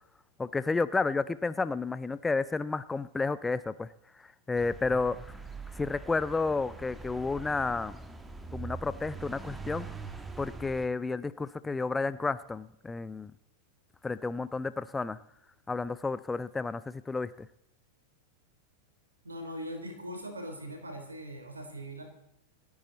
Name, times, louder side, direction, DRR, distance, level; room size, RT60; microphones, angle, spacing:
voice 1, 0.4-3.9 4.5-5.4 5.7-8.0 8.5-9.9 10.4-13.3 14.0-15.2 15.7-17.5, left 3 dB, 10° left, 16 dB, 0.6 m, -31 dB
sound 1, 4.5-10.9, right 4 dB, 10° right, 1.4 m, -43 dB
voice 2, 19.2-22.0, equal, 80° right, 5 dB, 3.8 m, -40 dB
27.5 x 9.8 x 4.1 m, 0.80 s
figure-of-eight pair, 90°, 0 cm